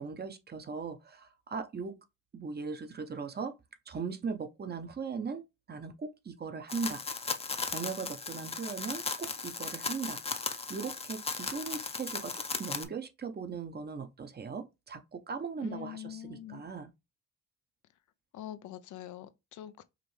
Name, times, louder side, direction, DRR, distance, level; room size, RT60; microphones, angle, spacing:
voice 1, 0.0-1.9 2.3-3.5 3.9-7.0 7.6-10.2 10.4-16.9, right 5 dB, 35° right, 0.7 m, -39 dB
sound 1, 6.7-12.8, left 4 dB, 20° left, 0.6 m, -37 dB
voice 2, 15.6-16.6 18.3-19.8, left 11 dB, 75° left, 0.5 m, -44 dB
5.0 x 2.6 x 3.2 m
cardioid pair, 90°, 30 cm